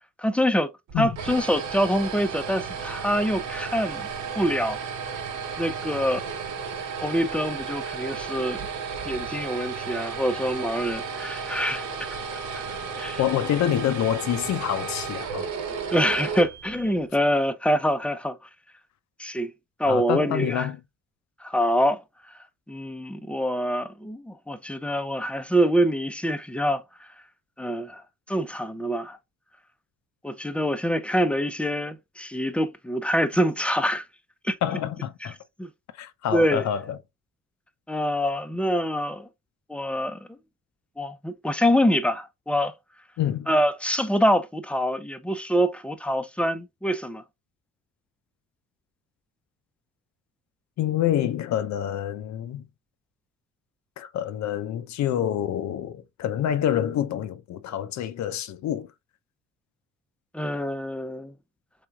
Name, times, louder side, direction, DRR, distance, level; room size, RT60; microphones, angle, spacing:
voice 1, 0.2-0.7 1.0-4.1 4.4-4.8 5.6-6.2 7.0-8.7 9.1-11.9 12.5-12.6 13.0-13.2 15.9-18.4 19.2-19.5 19.8-20.7 21.4-22.0 22.7-26.8 27.6-28.0 28.3-29.2 30.2-34.0 34.4-34.6 35.6-35.7 36.3-36.6 37.9-39.3 39.7-40.2 41.0-42.7 43.5-47.2 60.3-61.3, equal, 5° left, 0.4 m, -25 dB
sound 1, 0.9-17.1, right 5 dB, 75° right, 1.0 m, -33 dB
voice 2, 13.2-15.5 19.9-20.8 34.6-35.3 36.0-37.0 43.2-43.5 50.8-52.7 54.0-58.9, left 10 dB, 65° left, 0.5 m, -27 dB
3.5 x 3.2 x 2.3 m
cardioid pair, 90°, 30 cm